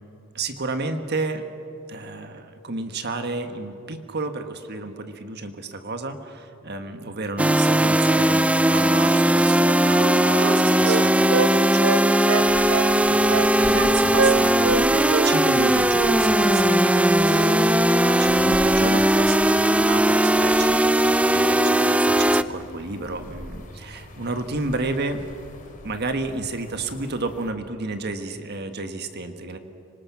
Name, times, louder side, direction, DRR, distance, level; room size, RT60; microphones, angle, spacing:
voice 1, 0.3-1.5 1.9-25.2 25.8-29.6, right 3 dB, 50° right, 7 dB, 1.5 m, -32 dB
sound 1, 7.4-22.4, right 1 dB, 5° right, 0.5 m, -19 dB
Wind instrument woodwind instrument, 9.6-11.5 11.8-12.9 13.3-13.9 14.2-14.8 15.1-15.3 15.6-16.2 16.5-16.7, right 4 dB, 70° right, 1.0 m, -25 dB
sound 2, 12.5-27.5, left 1 dB, 40° left, 2.9 m, -42 dB
25.5 x 25.0 x 6.0 m, 2.7 s
head